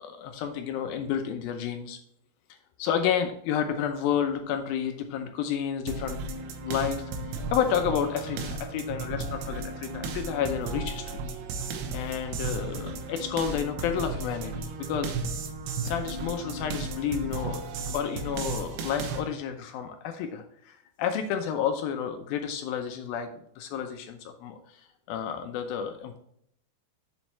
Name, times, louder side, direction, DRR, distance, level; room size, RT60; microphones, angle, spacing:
voice 1, 0.0-2.0 2.8-6.2 6.6-7.1 7.5-11.2 11.9-15.1 15.8-17.6 17.9-23.3 23.6-26.2, left 8 dB, 80° left, 6 dB, 2.3 m, -30 dB
sound 1, 5.9-19.2, right 3 dB, 85° right, 3.1 m, -34 dB
7.7 x 7.2 x 3.1 m, 0.68 s
omnidirectional pair, 4.6 m